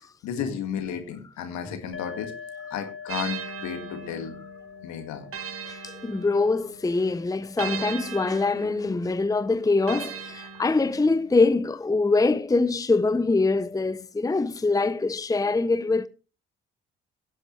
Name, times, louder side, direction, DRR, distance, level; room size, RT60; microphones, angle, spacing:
voice 1, 0.2-2.3 2.7-4.4 4.8-5.3, left 8 dB, 70° left, 2.0 m, -33 dB
sound 1, 1.9-9.4, left 6 dB, 45° left, 1.3 m, -44 dB
sound 2, 3.1-6.8 7.6-11.3, right 6 dB, 50° right, 1.9 m, -39 dB
voice 2, 5.6-16.1, left 3 dB, 10° left, 0.7 m, -24 dB
17.0 x 7.8 x 3.2 m
hypercardioid pair, 40°, 29 cm